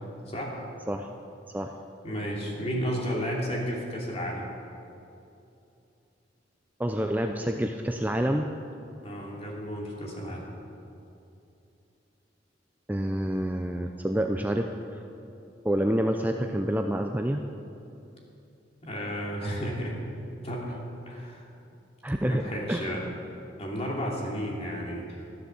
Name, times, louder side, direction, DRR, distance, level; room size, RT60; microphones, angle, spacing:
voice 1, 2.0-4.4 9.0-10.4 18.8-20.0 20.4-20.8 21.1-21.5 22.2-23.0 23.6-25.2, equal, 35° left, -2 dB, 2.9 m, -32 dB
voice 2, 6.8-8.5 12.9-14.7 14.9-15.0 15.6-17.4 22.0-22.9, equal, 10° right, 4 dB, 0.5 m, -28 dB
13.0 x 12.0 x 7.1 m, 2.7 s
head